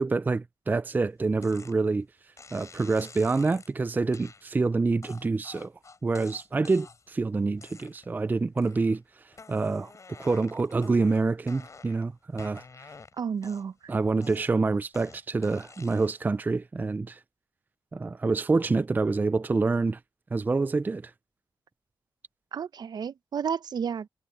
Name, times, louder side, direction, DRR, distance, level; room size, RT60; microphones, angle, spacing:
voice 1, 0.0-2.1 2.5-5.7 6.0-9.0 9.5-9.9 10.2-12.6 13.9-17.2 17.9-20.0 20.3-21.1, right 3 dB, 25° right, 0.4 m, -26 dB
sound 1, 1.4-1.8 2.4-3.7 4.1-4.4 5.0-7.1 7.6-8.2 8.6-9.0 9.3-12.0 12.4-13.8 14.2-16.2, left 4 dB, 40° left, 6.0 m, -49 dB
voice 2, 13.2-13.9 22.5-24.1, right 7 dB, 60° right, 0.7 m, -32 dB
cardioid pair, 85°, 8 cm